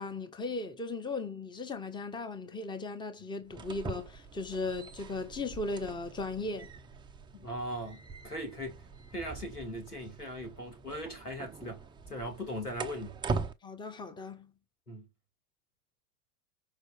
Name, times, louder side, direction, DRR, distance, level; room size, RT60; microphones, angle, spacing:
voice 1, 0.0-6.7 13.6-14.5, left 3 dB, 10° left, 1.2 m, -37 dB
sound 1, 3.4-13.5, right 4 dB, 10° right, 0.6 m, -42 dB
voice 2, 7.3-8.9 9.1-13.2 14.9-15.1, equal, 90° left, 2.4 m, -39 dB
6.2 x 4.8 x 5.1 m
figure-of-eight pair, 90°, 44 cm